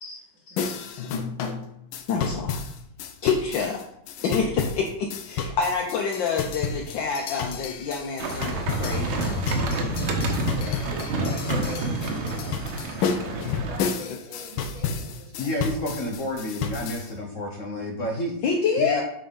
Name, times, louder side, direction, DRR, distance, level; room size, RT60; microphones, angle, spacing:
voice 1, 0.5-0.8 2.1-2.6 3.2-3.8 4.2-9.5 10.5-10.8 18.4-19.0, left 5 dB, 70° left, 1 dB, 1.4 m, -27 dB
sound 1, 0.6-17.1, left 6 dB, 90° left, 1.5 m, -32 dB
sound 2, 8.2-13.8, right 2 dB, 85° right, 1.8 m, -28 dB
voice 2, 10.6-12.7 13.2-15.8 17.9-18.2, right 1 dB, 70° right, -2 dB, 2.3 m, -42 dB
voice 3, 15.4-18.3 18.8-19.0, left 1 dB, 55° left, 1 dB, 0.9 m, -30 dB
7.7 x 3.6 x 5.1 m, 0.77 s
omnidirectional pair, 2.2 m